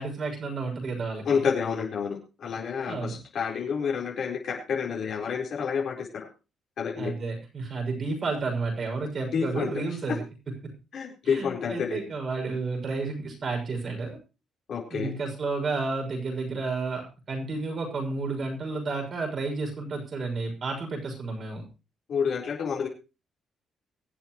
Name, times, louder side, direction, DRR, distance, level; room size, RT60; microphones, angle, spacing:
voice 1, 0.0-1.4 2.8-3.2 7.0-10.2 10.6-10.7 11.2-14.2 14.9-17.0 17.3-21.6, right 3 dB, 50° right, 2 dB, 6.4 m, -31 dB
voice 2, 1.2-6.3 6.8-7.1 9.3-9.7 10.9-12.0 14.7-15.1 22.1-22.9, left 6 dB, 65° left, -2 dB, 4.1 m, -29 dB
23.5 x 8.1 x 3.1 m, 0.30 s
cardioid pair, 90°, 0 cm